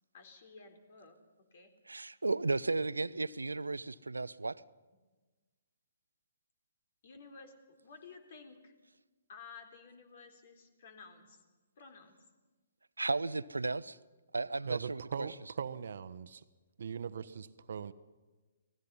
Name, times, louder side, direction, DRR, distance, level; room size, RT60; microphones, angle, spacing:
voice 1, 0.1-1.2 1.5-1.7 7.0-8.7 9.3-11.4 11.8-12.2, left 4 dB, 55° left, 7 dB, 3.9 m, -53 dB
voice 2, 1.9-4.6 13.0-14.0 14.3-15.3, right 3 dB, 85° right, 17 dB, 0.8 m, -34 dB
voice 3, 14.6-16.4 16.8-17.9, right 7 dB, 60° right, 14 dB, 1.2 m, -40 dB
30.0 x 19.5 x 5.6 m, 1.2 s
figure-of-eight pair, 130°, 0 cm